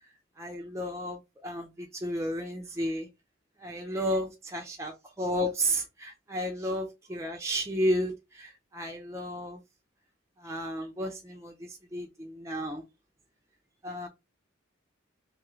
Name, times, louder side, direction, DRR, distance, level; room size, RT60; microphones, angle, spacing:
voice 1, 0.4-3.1 3.6-9.6 10.4-12.8 13.8-14.1, equal, 15° right, 0.4 m, -33 dB
3.1 x 2.4 x 3.1 m
head